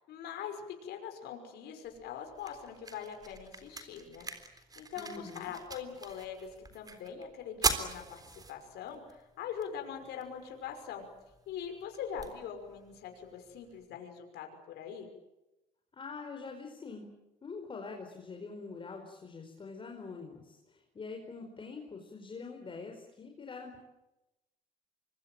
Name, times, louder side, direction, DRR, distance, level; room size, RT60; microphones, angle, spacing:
voice 1, 0.0-4.3 4.8-11.1 11.5-15.1, left 8 dB, 75° left, 4 dB, 5.8 m, -42 dB
sound 1, 1.8-13.8, right 3 dB, 20° right, 3.7 m, -41 dB
voice 2, 5.0-5.5 15.9-17.1 17.4-23.8, left 4 dB, 30° left, 2 dB, 4.7 m, -45 dB
25.5 x 23.5 x 9.1 m, 0.98 s
cardioid pair, 110°, 17 cm